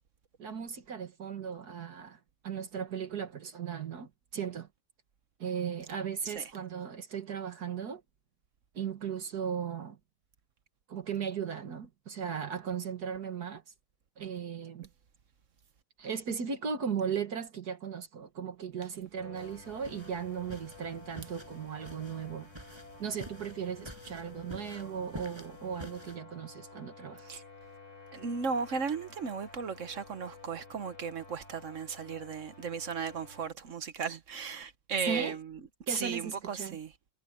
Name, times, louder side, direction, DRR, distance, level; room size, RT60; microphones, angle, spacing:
voice 1, 0.4-4.7 5.4-8.0 8.7-10.0 10.9-13.6 14.2-14.9 16.0-22.5 23.0-27.3 35.1-35.4 35.9-36.8, right 7 dB, 70° right, 2.1 m, -37 dB
sound 1, 19.2-33.5, left 4 dB, 45° left, 4.0 m, -52 dB
sound 2, 19.4-26.2, equal, 15° right, 7.7 m, -49 dB
voice 2, 28.1-35.6 35.9-36.9, right 5 dB, 55° right, 1.2 m, -36 dB
omnidirectional pair, 1.8 m